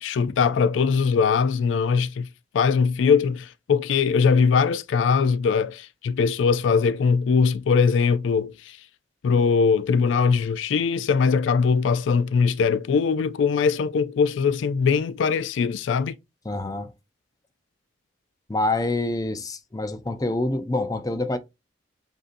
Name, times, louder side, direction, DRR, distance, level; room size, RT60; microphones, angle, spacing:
voice 1, 0.0-2.3 2.5-8.8 9.2-16.2, left 5 dB, 85° left, 0.3 m, -21 dB
voice 2, 16.5-16.9 18.5-21.4, left 2 dB, 20° left, 0.5 m, -26 dB
7.6 x 2.6 x 2.5 m
head